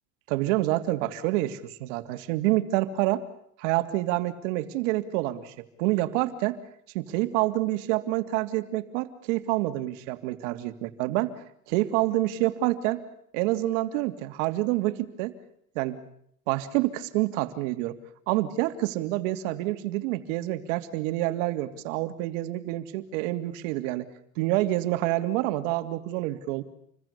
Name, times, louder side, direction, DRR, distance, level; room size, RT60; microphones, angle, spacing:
voice 1, 0.3-3.2 3.6-6.6 6.9-11.3 11.7-13.0 13.3-15.3 15.7-16.0 16.5-18.0 18.3-24.1 24.4-26.6, right 16 dB, 65° right, 10 dB, 3.0 m, -27 dB
28.5 x 22.0 x 8.4 m, 0.69 s
supercardioid pair, 125°, 40 cm